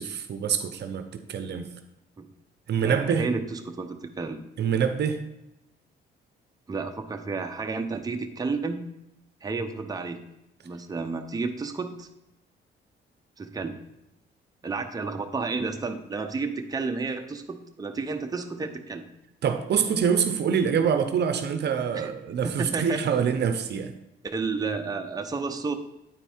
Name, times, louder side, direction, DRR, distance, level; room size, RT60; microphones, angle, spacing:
voice 1, 0.0-1.7 2.7-3.3 4.6-5.2 19.4-23.9, right 7 dB, 60° right, 9 dB, 0.7 m, -25 dB
voice 2, 2.8-4.4 6.7-8.8 9.4-10.2 10.6-12.1 13.4-13.7 14.6-19.0 21.9-22.1 22.4-23.0 24.2-25.7, right 4 dB, 20° right, 4 dB, 0.7 m, -31 dB
9.2 x 4.5 x 4.3 m, 0.88 s
cardioid pair, 90°, 20 cm